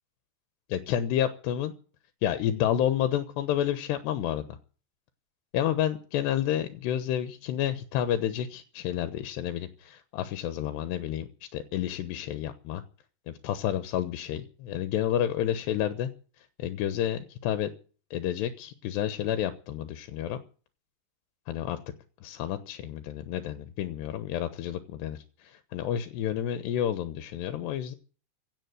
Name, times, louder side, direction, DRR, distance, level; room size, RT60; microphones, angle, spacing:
voice 1, 0.7-1.7 2.2-4.5 5.5-11.3 11.5-12.8 13.3-16.1 16.6-17.7 18.1-20.4 21.5-21.8 22.2-28.0, left 11 dB, 85° left, 10 dB, 3.3 m, -30 dB
16.5 x 8.8 x 9.3 m, 0.40 s
omnidirectional pair, 4.8 m